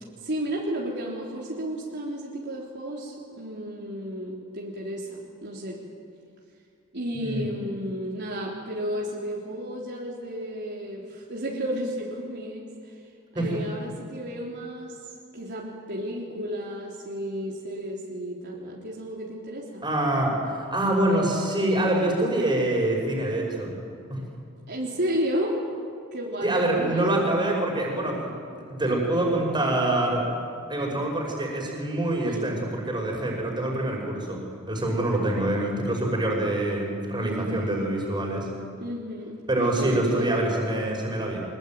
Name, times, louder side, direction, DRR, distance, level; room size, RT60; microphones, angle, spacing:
voice 1, 0.2-5.8 6.9-12.9 13.3-15.0 15.3-19.9 24.7-25.6 26.1-27.1 32.2-32.6 37.2-37.8 38.8-39.3 39.6-40.5, equal, 50° right, -4 dB, 3.6 m, -32 dB
voice 2, 19.8-23.7 24.1-24.2 26.4-30.3 30.7-38.5 39.5-41.4, right 1 dB, 20° right, -1 dB, 5.8 m, -25 dB
24.5 x 22.0 x 9.2 m, 2.3 s
head